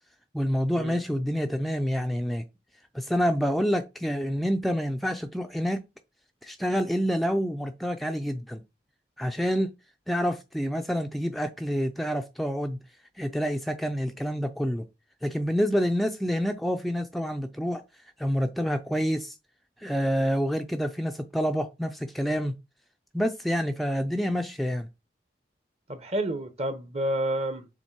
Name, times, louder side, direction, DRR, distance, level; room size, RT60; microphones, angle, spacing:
voice 1, 0.3-2.4 2.9-5.8 6.4-8.6 9.2-9.7 10.1-12.8 13.2-14.8 15.2-17.8 18.2-19.3 19.8-22.5 23.1-24.9, equal, ahead, 0.4 m, -27 dB
voice 2, 25.9-27.7, right 1 dB, 35° right, 0.9 m, -29 dB
7.1 x 3.2 x 4.5 m
head